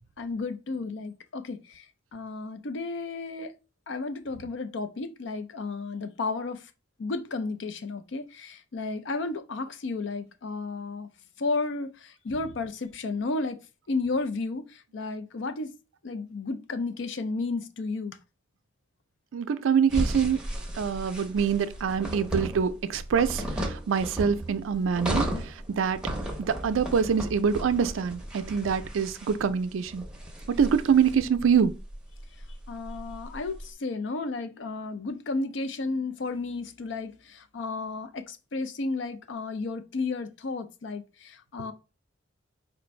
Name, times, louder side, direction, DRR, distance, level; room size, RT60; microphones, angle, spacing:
voice 1, 0.2-1.9 2.1-3.5 3.9-6.6 7.0-11.1 11.4-13.6 13.9-15.7 16.0-18.2 32.7-41.7, left 3 dB, 65° left, 0.5 m, -33 dB
voice 2, 19.3-20.4 20.8-26.0 26.4-30.0 30.6-31.7, right 6 dB, 85° right, 0.4 m, -25 dB
sound 1, 19.9-33.6, right 1 dB, 5° right, 0.6 m, -35 dB
4.4 x 2.5 x 3.1 m
head